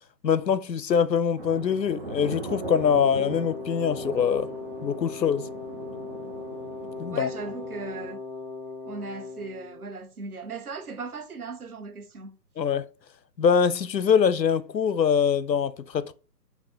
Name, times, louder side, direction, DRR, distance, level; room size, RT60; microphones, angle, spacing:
voice 1, 0.2-4.5 4.8-5.5 7.0-7.3 12.6-12.8 13.4-16.1, left 7 dB, 80° left, 0.6 m, -23 dB
sound 1, 1.4-8.1, right 2 dB, 35° right, 0.9 m, -39 dB
Wind instrument woodwind instrument, 2.6-9.9, left 3 dB, 30° left, 0.6 m, -38 dB
voice 2, 7.1-8.2 8.8-12.4, right 4 dB, 60° right, 0.9 m, -38 dB
5.4 x 2.5 x 3.5 m
figure-of-eight pair, 140°, 49 cm